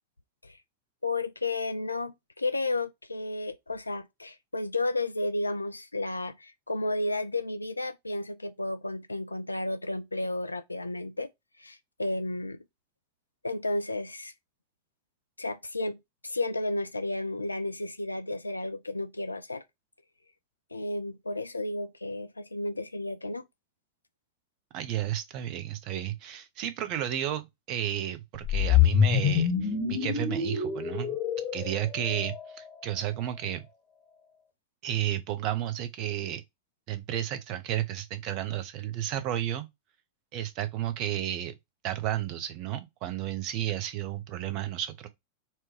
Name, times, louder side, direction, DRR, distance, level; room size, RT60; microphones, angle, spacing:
voice 1, 1.0-11.3 11.6-12.6 13.4-14.3 15.4-19.6 20.7-23.5 32.0-32.1, left 2 dB, 80° left, 0.4 m, -32 dB
voice 2, 24.7-31.2 31.5-33.7 34.8-36.4 36.9-39.7 40.3-41.5 41.8-45.1, right 11 dB, 40° right, 0.7 m, -32 dB
sound 1, 28.3-32.7, left 8 dB, 35° left, 1.0 m, -26 dB
4.5 x 2.3 x 4.4 m
figure-of-eight pair, 90°, 0 cm